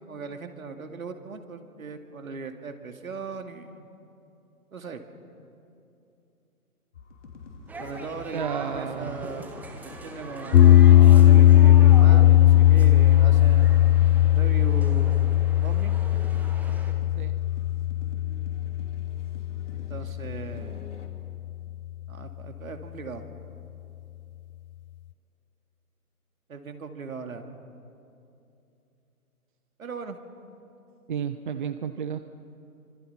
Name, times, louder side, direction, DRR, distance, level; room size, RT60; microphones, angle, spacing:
voice 1, 0.0-3.9 4.7-5.0 7.8-9.5 10.0-13.9 14.3-16.0 19.7-20.8 22.1-23.2 26.5-27.5 29.8-30.2, right 4 dB, 65° right, 5 dB, 2.5 m, -38 dB
sound 1, 6.9-21.1, left 4 dB, 50° left, 3.2 m, -46 dB
sound 2, 7.7-16.9, right 1 dB, 5° right, 1.1 m, -42 dB
voice 2, 8.0-9.3 17.1-17.3 31.1-32.2, right 7 dB, 35° right, 10 dB, 0.7 m, -32 dB
sound 3, 10.5-20.8, left 13 dB, 70° left, 0.5 m, -18 dB
27.5 x 25.5 x 5.8 m, 2.8 s
figure-of-eight pair, 135°, 45 cm